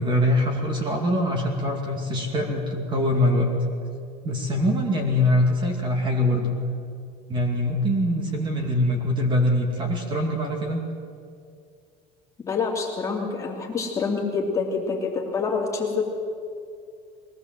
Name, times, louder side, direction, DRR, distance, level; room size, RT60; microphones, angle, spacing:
voice 1, 0.0-3.5 4.2-6.6 7.3-10.8, left 1 dB, 25° right, 2 dB, 2.4 m, -23 dB
voice 2, 12.4-16.0, left 4 dB, 20° left, -2 dB, 2.9 m, -26 dB
22.0 x 17.5 x 7.7 m, 2.3 s
cardioid pair, 165°, 17 cm